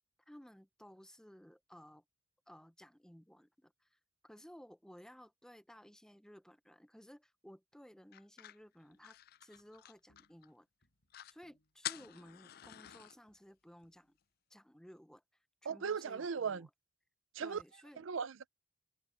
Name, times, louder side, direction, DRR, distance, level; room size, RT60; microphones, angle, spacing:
voice 1, 0.3-2.0 2.5-10.7 11.3-14.2 14.5-15.2 15.6-16.7 17.4-18.0, equal, 5° left, 0.6 m, -57 dB
sound 1, 8.1-10.5 10.8-10.9 11.1-11.4 11.8-13.2, left 12 dB, 45° left, 0.4 m, -47 dB
sound 2, 8.9-9.2 9.5-10.5 10.8-11.8 12.1-14.3, equal, 65° left, 6.0 m, -76 dB
voice 2, 15.7-16.7 17.3-17.6 18.0-18.5, right 6 dB, 70° right, 0.5 m, -38 dB
head